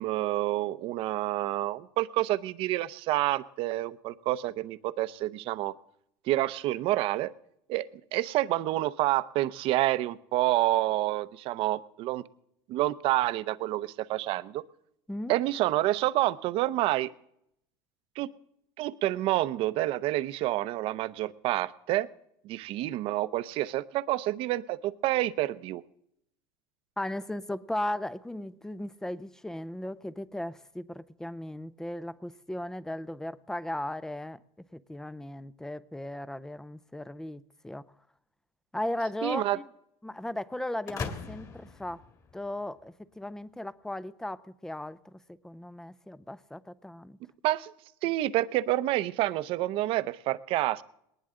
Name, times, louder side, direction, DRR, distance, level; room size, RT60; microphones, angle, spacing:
voice 1, 0.0-5.7 6.3-7.3 7.7-12.2 12.7-14.6 15.3-17.1 18.2-18.3 18.8-22.1 22.4-25.8 39.2-39.6 47.4-47.7 48.0-50.8, right 16 dB, 50° right, 0.7 m, -28 dB
voice 2, 27.0-34.4 34.7-37.9 38.7-39.7 40.0-42.0 42.3-45.1 45.4-47.2, left 1 dB, 5° left, 0.5 m, -36 dB
sound 1, 40.9-42.8, left 5 dB, 30° left, 1.9 m, -40 dB
20.0 x 19.0 x 3.8 m
supercardioid pair, 140°, 12 cm